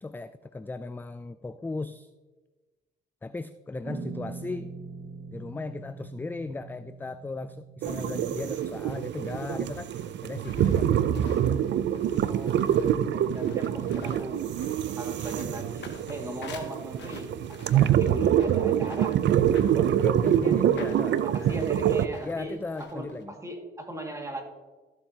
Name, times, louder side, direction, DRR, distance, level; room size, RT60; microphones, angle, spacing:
voice 1, 0.0-2.1 3.2-4.7 5.3-9.9 10.2-11.0 13.6-14.3 17.7-18.0 19.7-21.7 22.2-23.4, left 3 dB, 10° left, 12 dB, 0.3 m, -37 dB
sound 1, 3.9-8.9, right 4 dB, 45° right, 1.2 m, -42 dB
sound 2, 7.8-23.2, left 5 dB, 60° left, 1.5 m, -48 dB
sound 3, 7.8-22.1, right 10 dB, 65° right, 0.5 m, -25 dB
voice 2, 12.3-14.4 15.0-19.2 20.4-20.5 21.2-24.4, right 1 dB, 15° right, 2 dB, 2.1 m, -39 dB
13.5 x 7.2 x 2.9 m, 1.2 s
cardioid pair, 90°, 20 cm